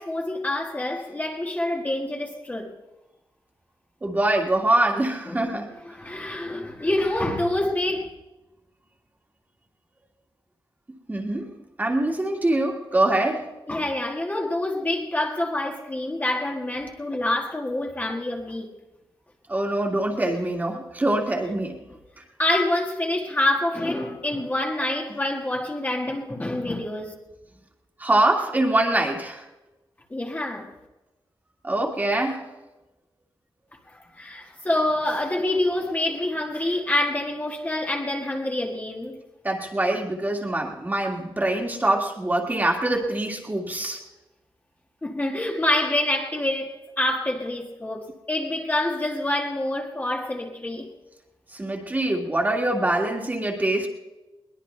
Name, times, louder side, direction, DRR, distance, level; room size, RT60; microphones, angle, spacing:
voice 1, 0.0-2.7 5.3-5.4 5.9-8.1 13.7-18.7 22.4-27.1 30.1-30.7 33.9-39.2 45.0-50.9, left 1 dB, 20° left, 1.6 m, -26 dB
voice 2, 4.0-5.7 11.1-13.5 19.5-21.8 28.0-29.5 31.6-32.5 39.4-44.0 51.5-53.9, right 1 dB, 20° right, 2.0 m, -24 dB
21.5 x 20.0 x 3.3 m
wide cardioid pair, 160°, 9 cm